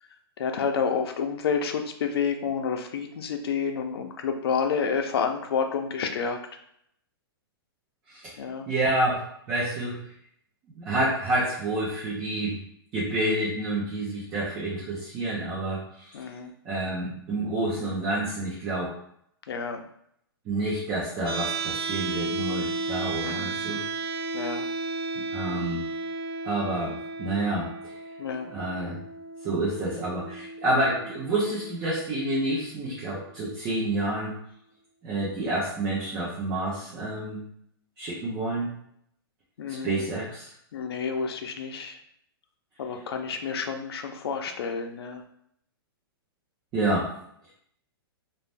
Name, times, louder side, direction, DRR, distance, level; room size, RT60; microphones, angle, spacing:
voice 1, 0.4-6.4 8.4-8.7 16.1-16.5 19.5-19.8 23.2-23.6 24.3-24.7 28.2-28.5 39.6-40.0 40.7-42.0 42.8-45.2, left 6 dB, 75° left, 5 dB, 0.5 m, -29 dB
voice 2, 8.1-8.4 8.7-10.1 10.7-12.6 12.9-16.3 16.6-19.0 20.4-23.8 25.2-25.8 26.4-27.9 28.5-29.0 29.4-34.4 35.0-37.4 38.0-38.7 39.7-40.5 46.7-47.1, right 1 dB, 15° right, -6 dB, 0.4 m, -29 dB
sound 1, 21.3-33.3, right 3 dB, 80° right, 0.7 m, -34 dB
2.6 x 2.1 x 3.2 m, 0.70 s
hypercardioid pair, 175°, 13 cm